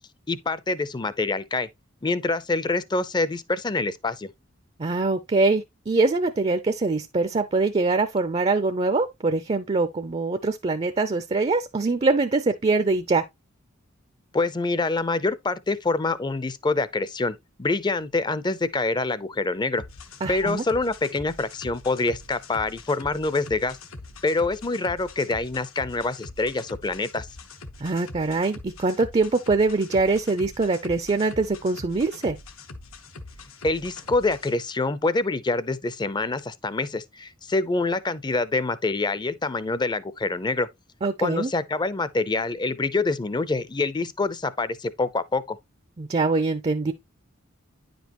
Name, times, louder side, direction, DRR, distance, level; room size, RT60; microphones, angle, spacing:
voice 1, 0.3-1.7 2.0-4.3 14.3-19.8 20.3-23.8 24.2-27.3 33.6-40.7 41.2-45.6, left 3 dB, 20° left, 0.5 m, -26 dB
voice 2, 4.8-13.2 20.2-20.6 27.8-32.4 41.0-41.5 46.0-46.9, right 3 dB, 30° right, 0.4 m, -23 dB
sound 1, 19.8-34.5, left 2 dB, 80° left, 1.1 m, -43 dB
9.8 x 5.2 x 2.9 m
head